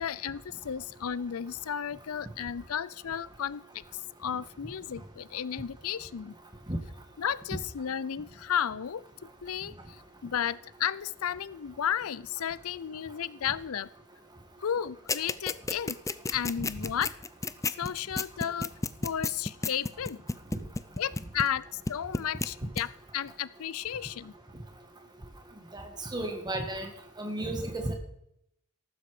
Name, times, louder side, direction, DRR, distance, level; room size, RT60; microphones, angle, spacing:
voice 1, 0.0-6.3 7.2-9.0 9.4-13.9 14.6-16.0 16.3-17.1 17.8-18.7 19.0-20.2 21.0-24.3, left 9 dB, 70° left, 18 dB, 0.5 m, -33 dB
sound 1, 15.1-21.6 21.9-22.5 22.8-22.9, left 3 dB, 15° left, 0.5 m, -31 dB
voice 2, 25.7-26.9 27.2-28.0, right 1 dB, 20° right, 5 dB, 1.9 m, -33 dB
14.0 x 12.5 x 5.0 m, 0.77 s
head